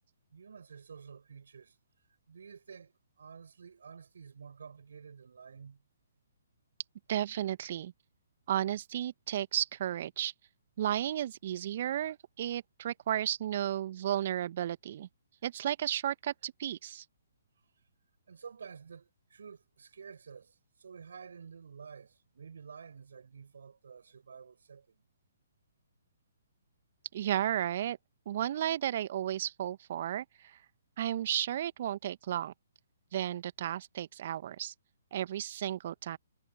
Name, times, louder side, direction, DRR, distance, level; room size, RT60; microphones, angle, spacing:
voice 1, 0.3-1.8 2.3-5.8 18.3-25.0, right 6 dB, 65° right, 5.5 m, -50 dB
voice 2, 7.1-7.9 8.5-10.3 10.8-15.1 15.4-17.1 27.1-28.0 28.3-30.6 31.0-32.5 33.1-34.7 35.1-36.2, right 11 dB, 45° right, 1.7 m, -33 dB
figure-of-eight pair, 125°, 0 cm